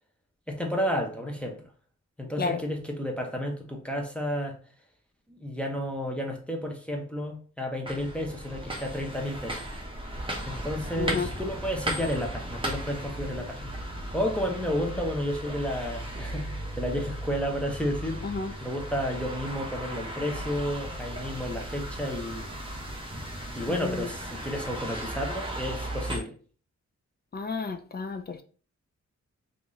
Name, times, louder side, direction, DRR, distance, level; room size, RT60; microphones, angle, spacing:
voice 1, 0.5-1.7 2.2-4.6 5.3-9.6 10.5-13.7 14.1-18.2 18.6-22.5 23.5-26.4, equal, 5° left, 0.8 m, -31 dB
sound 1, 7.9-26.2, right 1 dB, 15° right, 1.0 m, -36 dB
voice 2, 11.0-11.3 18.2-18.6 23.6-24.1 27.3-28.4, left 4 dB, 35° left, 0.5 m, -32 dB
3.5 x 2.7 x 3.0 m
wide cardioid pair, 90°, 29 cm